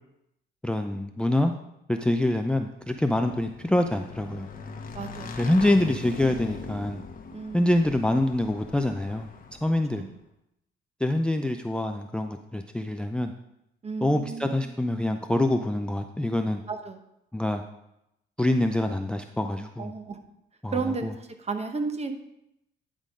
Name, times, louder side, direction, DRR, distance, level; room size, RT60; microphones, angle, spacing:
voice 1, 0.6-1.5 1.9-4.5 5.4-7.0 7.5-9.3 9.6-10.0 11.0-13.3 14.0-16.6 17.3-17.6 18.4-19.9 20.6-20.8, left 1 dB, 5° left, 6 dB, 0.4 m, -25 dB
Motorcycle / Engine, 2.7-10.0, left 5 dB, 45° left, 1.0 m, -41 dB
voice 2, 4.9-5.5 7.3-7.7 9.9-10.2 13.8-14.8 16.7-17.0 19.8-20.2 20.7-22.1, right 4 dB, 30° right, 6 dB, 1.0 m, -33 dB
10.5 x 3.7 x 5.0 m, 0.84 s
cardioid pair, 90°, 20 cm